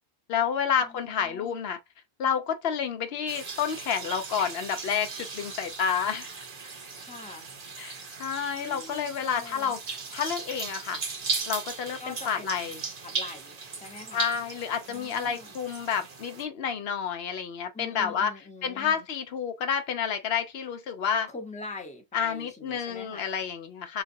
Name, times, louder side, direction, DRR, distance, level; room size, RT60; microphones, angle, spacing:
voice 1, 0.3-1.8 2.2-6.4 7.8-11.0 11.5-12.8 14.1-21.3 22.1-24.0, left 7 dB, 75° left, 0.8 m, -30 dB
voice 2, 0.8-1.6 7.0-7.5 8.5-9.8 12.0-12.7 13.0-14.4 14.9-15.5 17.7-19.0 21.3-23.3, left 3 dB, 10° left, 0.7 m, -44 dB
sound 1, 3.3-16.4, right 4 dB, 45° right, 0.7 m, -37 dB
3.9 x 2.4 x 2.6 m
omnidirectional pair, 1.1 m